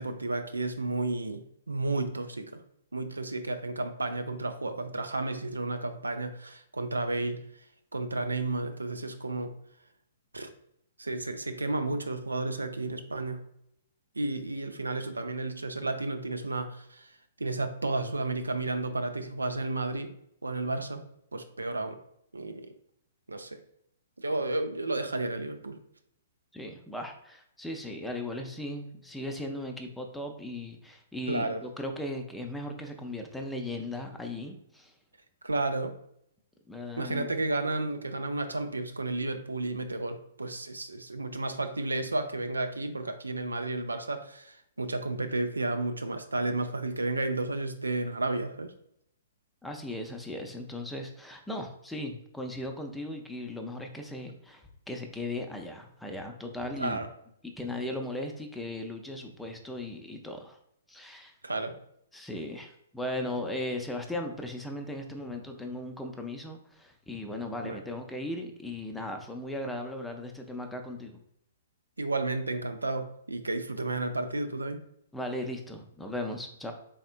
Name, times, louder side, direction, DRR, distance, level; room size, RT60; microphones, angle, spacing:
voice 1, 0.0-2.6 2.9-7.4 7.9-9.5 10.3-10.5 11.0-13.4 14.2-17.1 17.4-20.1 20.4-21.0 21.3-22.0 22.3-22.7 23.3-23.6 24.2-25.8 31.3-31.6 35.4-35.9 37.0-48.7 56.8-57.1 61.4-61.7 67.6-67.8 72.0-74.8, right 2 dB, 80° right, 8 dB, 0.4 m, -32 dB
voice 2, 26.5-34.9 36.7-37.3 49.6-57.1 57.4-60.6 60.9-61.3 62.1-71.2 75.1-76.7, left 1 dB, 5° left, 3 dB, 0.5 m, -37 dB
4.2 x 3.5 x 2.4 m, 0.74 s
figure-of-eight pair, 115°, 0 cm